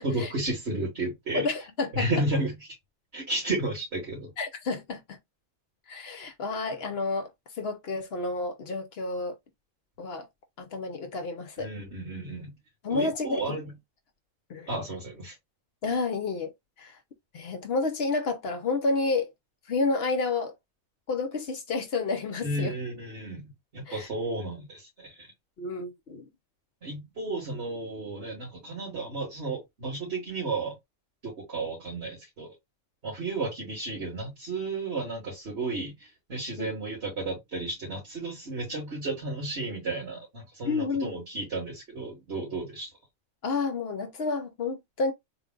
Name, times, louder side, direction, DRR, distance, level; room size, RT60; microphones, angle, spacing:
voice 1, 0.0-1.4 1.9-2.5 3.1-4.3 11.6-12.5 12.9-13.7 14.7-15.4 22.4-25.3 26.8-30.7 31.2-32.5 33.0-42.9, right 2 dB, 55° right, 2.0 m, -33 dB
voice 2, 1.3-2.1 4.4-5.2 5.9-9.3 10.0-10.3 10.6-11.7 12.8-13.6 14.5-14.7 15.8-16.5 16.8-17.0 17.3-19.3 19.7-20.5 21.1-22.7 23.9-24.1 25.6-26.3 36.6-36.7 40.6-41.1 43.4-45.1, left 3 dB, 60° left, 0.8 m, -30 dB
3.8 x 2.2 x 3.7 m
omnidirectional pair, 1.4 m